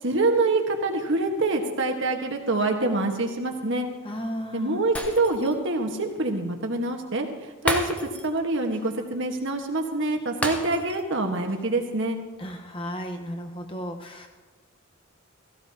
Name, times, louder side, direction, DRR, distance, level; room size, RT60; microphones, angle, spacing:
voice 1, 0.0-3.9 4.5-7.9 8.2-12.2, right 2 dB, 60° right, 3 dB, 1.5 m, -25 dB
voice 2, 4.0-4.8 12.4-14.3, equal, 25° left, 3 dB, 1.2 m, -34 dB
Shatter, 5.0-5.7 6.0-6.1 7.7-8.4 8.7-8.9 10.4-11.1 11.5-11.6, equal, 5° left, 0.8 m, -31 dB
16.0 x 16.0 x 2.9 m, 1.3 s
head